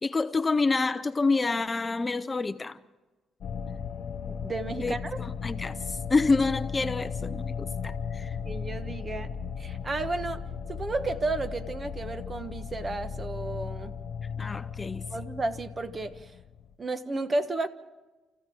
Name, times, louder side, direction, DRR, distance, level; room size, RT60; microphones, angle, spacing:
voice 1, 0.0-2.8 4.8-8.4 14.4-15.1, left 3 dB, 25° left, 0.7 m, -28 dB
sound 1, 3.4-16.7, left 6 dB, 65° left, 0.9 m, -36 dB
voice 2, 4.3-5.2 8.4-9.3 9.6-10.4 10.7-13.9 15.1-16.3 16.8-17.7, right 2 dB, 30° right, 1.3 m, -32 dB
29.0 x 15.0 x 6.3 m
cardioid pair, 90°, 0 cm